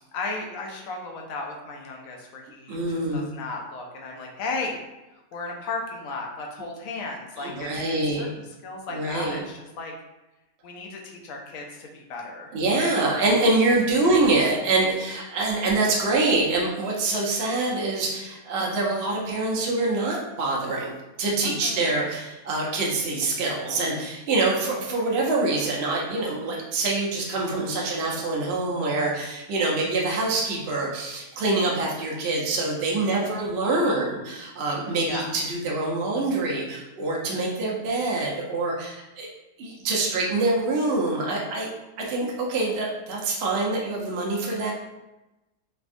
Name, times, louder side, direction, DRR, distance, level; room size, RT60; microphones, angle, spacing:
voice 1, 0.1-4.7 5.3-8.3 8.6-9.9 10.6-12.5 14.0-14.1 21.4-21.8 33.1-33.4 35.0-35.3, left 3 dB, 70° left, 1 dB, 0.9 m, -35 dB
voice 2, 2.7-3.3 7.4-8.3 8.9-9.4 12.5-20.9 21.2-39.3 39.6-41.7 42.0-44.7, right 2 dB, 60° right, -3 dB, 0.7 m, -25 dB
3.3 x 2.2 x 2.5 m, 1.0 s
omnidirectional pair, 1.6 m